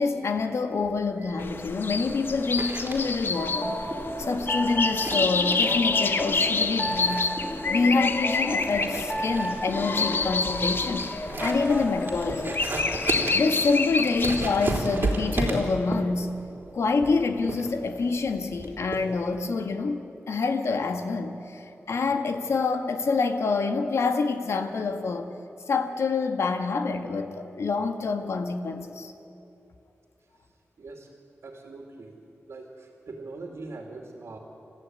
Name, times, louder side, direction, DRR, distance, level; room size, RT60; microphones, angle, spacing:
voice 1, 0.0-3.8 4.2-7.3 7.7-11.1 11.4-12.6 13.3-16.3 16.7-20.0 20.3-25.3 25.7-29.1, left 4 dB, 80° left, 6 dB, 1.7 m, -26 dB
sound 1, 0.8-19.5, right 2 dB, 45° right, 3.9 m, -34 dB
sound 2, 1.4-14.5, left 4 dB, 50° left, 1.1 m, -28 dB
sound 3, 3.3-12.6, equal, 10° left, 2.0 m, -33 dB
voice 2, 30.8-31.1 31.4-32.2 32.5-34.4, right 3 dB, 70° right, 1 dB, 2.9 m, -41 dB
28.5 x 15.0 x 9.5 m, 2.8 s
wide cardioid pair, 150°, 5 cm